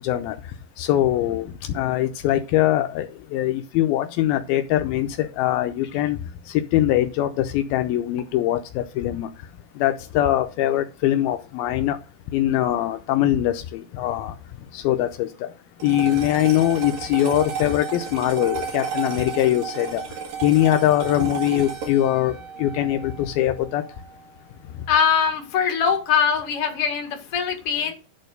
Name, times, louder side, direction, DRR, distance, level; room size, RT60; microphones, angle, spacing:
voice 1, 0.0-0.4 0.8-1.4 1.7-6.2 6.7-9.3 9.8-12.0 12.3-14.3 14.7-15.3 15.8-20.0 20.4-22.3 22.6-23.8, left 13 dB, 85° left, 7 dB, 2.4 m, -22 dB
sound 1, 15.8-24.3, right 6 dB, 65° right, 3.8 m, -33 dB
voice 2, 24.9-27.9, left 7 dB, 45° left, 3 dB, 2.4 m, -22 dB
11.0 x 4.4 x 6.5 m, 0.34 s
omnidirectional pair, 4.4 m